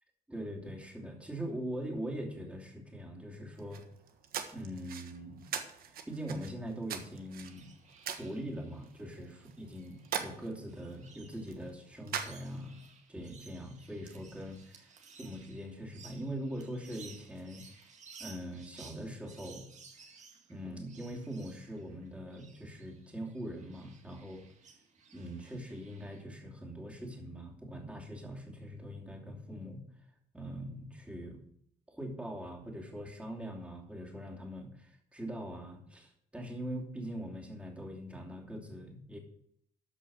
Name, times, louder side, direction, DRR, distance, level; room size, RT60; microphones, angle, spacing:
voice 1, 0.3-3.8 4.5-5.5 5.8-7.7 8.2-12.8 13.1-14.9 15.2-17.9 18.2-19.7 20.5-24.4 25.1-29.8 30.3-31.4 31.9-39.2, equal, 5° right, -1 dB, 2.8 m, -42 dB
sound 1, 3.6-12.8, right 8 dB, 60° right, 1.3 m, -43 dB
sound 2, 7.3-26.2, right 5 dB, 45° right, 1.9 m, -57 dB
13.0 x 5.4 x 6.2 m, 0.68 s
cardioid pair, 110°, 17 cm